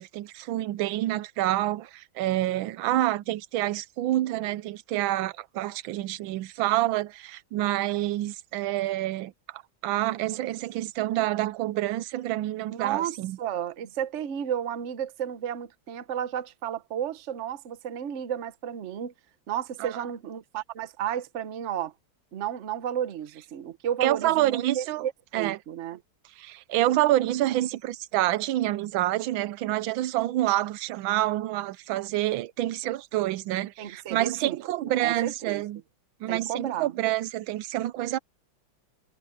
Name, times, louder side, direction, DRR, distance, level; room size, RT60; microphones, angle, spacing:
voice 1, 0.0-13.4 19.8-20.0 24.0-25.0 25.3-25.6 26.4-35.8 36.2-38.2, right 15 dB, 85° right, 1.4 m, -27 dB
voice 2, 12.7-19.1 19.5-21.9 22.3-26.0 33.8-35.6 36.3-36.9, right 9 dB, 50° right, 1.0 m, -33 dB
omnidirectional pair, 2.1 m